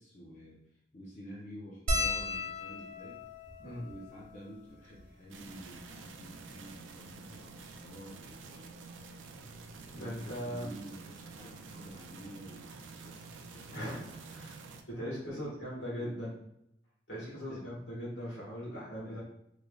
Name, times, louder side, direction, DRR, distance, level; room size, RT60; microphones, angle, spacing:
voice 1, 0.0-3.2 3.8-8.7 9.7-13.8 15.0-16.2 17.1-18.0 18.6-19.2, equal, 40° left, -5 dB, 0.6 m, -50 dB
sound 1, 1.9-6.5 7.2-7.3 7.5-7.7 9.0-9.2 10.6-10.7 11.0-11.2, left 2 dB, 45° right, 0.7 m, -37 dB
sound 2, 5.3-14.8, right 4 dB, 85° right, 0.4 m, -49 dB
voice 2, 9.9-10.7 13.7-14.6 14.9-16.3 17.1-19.2, equal, 70° left, -5 dB, 1.5 m, -39 dB
3.2 x 3.1 x 2.3 m, 0.79 s
head